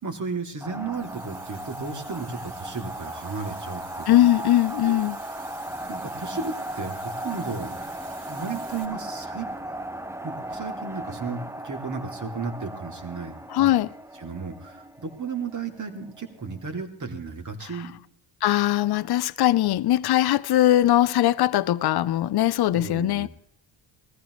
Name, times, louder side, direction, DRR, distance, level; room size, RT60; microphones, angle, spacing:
voice 1, 0.0-4.0 4.8-5.1 5.9-7.7 8.3-9.5 10.2-13.7 14.2-17.9 22.7-23.3, right 4 dB, 40° right, 2.8 m, -34 dB
sound 1, 0.6-16.4, right 1 dB, 5° right, 0.6 m, -37 dB
sound 2, 0.9-8.9, right 3 dB, 70° right, 5.6 m, -48 dB
voice 2, 4.1-5.2 13.5-13.9 18.4-23.3, left 13 dB, 55° left, 0.6 m, -21 dB
20.5 x 14.5 x 3.2 m
cardioid pair, 105°, 48 cm